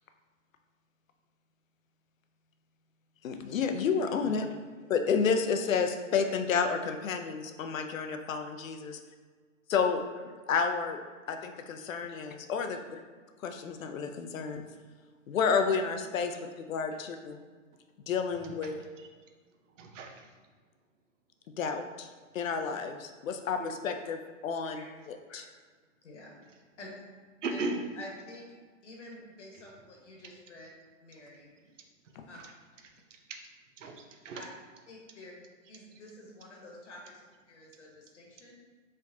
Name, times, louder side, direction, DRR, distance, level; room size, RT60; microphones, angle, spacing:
voice 1, 3.2-4.5 4.9-9.0 9.7-10.0 10.5-11.0 11.3-13.0 13.4-14.6 15.3-17.4 18.1-18.7 21.6-22.1 22.3-25.4 32.2-32.3, left 5 dB, 85° left, 6 dB, 0.6 m, -30 dB
voice 2, 19.8-20.3 23.6-23.7 27.4-27.8 33.3-33.4 33.8-34.4, right 3 dB, 70° right, 3 dB, 0.8 m, -36 dB
voice 3, 26.0-26.9 27.5-27.6 27.9-28.5 28.8-30.7 31.0-31.5 32.3-32.4 34.3-34.5 34.9-37.1 37.5-38.5, left 1 dB, 60° left, -1 dB, 1.3 m, -49 dB
4.3 x 3.6 x 2.7 m, 1.5 s
hypercardioid pair, 170°, 39 cm